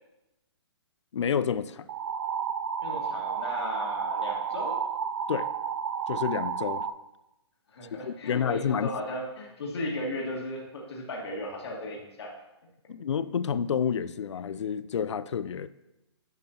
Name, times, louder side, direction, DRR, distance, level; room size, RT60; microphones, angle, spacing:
voice 1, 1.1-1.9 5.3-5.5 6.1-6.9 8.0-8.9 12.9-15.7, left 7 dB, 85° left, 15 dB, 0.4 m, -29 dB
sound 1, 1.9-6.9, right 7 dB, 45° right, 0.4 m, -31 dB
voice 2, 2.8-4.8 7.7-12.3, left 1 dB, 65° left, -1 dB, 1.6 m, -36 dB
9.3 x 5.5 x 2.8 m, 0.95 s
hypercardioid pair, 150°, 15 cm